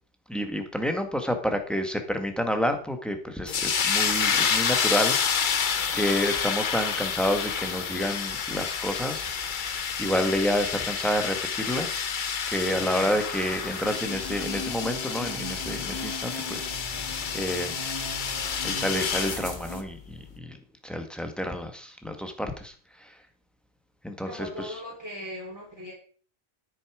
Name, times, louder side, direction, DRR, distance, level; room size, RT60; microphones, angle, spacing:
voice 1, 0.3-5.5 5.9-9.3 10.0-12.1 12.5-16.7 17.3-17.8 18.6-20.6 20.8-23.2 24.0-24.8, equal, ahead, 5 dB, 1.5 m, -29 dB
sound 1, 3.5-19.4, left 6 dB, 50° left, 0.9 m, -29 dB
sound 2, 13.7-19.8, left 2 dB, 25° left, 1.4 m, -38 dB
voice 2, 24.2-25.9, equal, 15° right, -4 dB, 3.2 m, -39 dB
10.5 x 8.3 x 4.9 m, 0.43 s
omnidirectional pair, 1.1 m